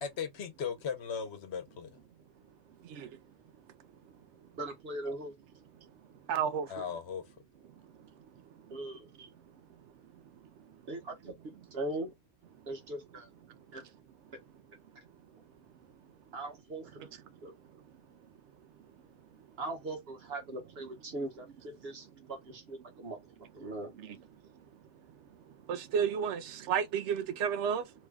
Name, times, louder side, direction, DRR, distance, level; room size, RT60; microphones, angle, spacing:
voice 1, 0.0-2.0 6.7-7.3, left 6 dB, 75° left, 1.0 m, -37 dB
voice 2, 4.6-5.3 8.7-9.1 10.9-11.3 11.7-12.1 12.7-13.3 13.7-13.8 16.3-17.1 17.4-17.5 19.6-23.2 23.5-23.9, right 2 dB, 65° right, 1.3 m, -40 dB
voice 3, 6.3-6.7 8.7-8.8 9.2-9.3 24.0-24.2 25.7-27.9, right 7 dB, 90° right, 0.9 m, -32 dB
3.1 x 2.2 x 3.3 m
omnidirectional pair, 1.1 m